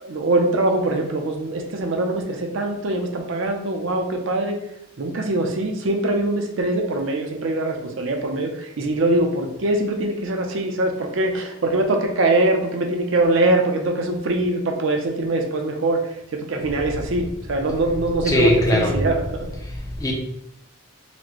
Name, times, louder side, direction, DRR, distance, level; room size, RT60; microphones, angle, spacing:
voice 1, 0.0-4.6 5.0-16.0 16.3-19.4, right 2 dB, 65° right, 3 dB, 0.5 m, -23 dB
voice 2, 18.2-19.0 19.6-20.1, left 1 dB, 15° left, 0 dB, 0.5 m, -20 dB
4.1 x 2.1 x 2.9 m, 0.79 s
head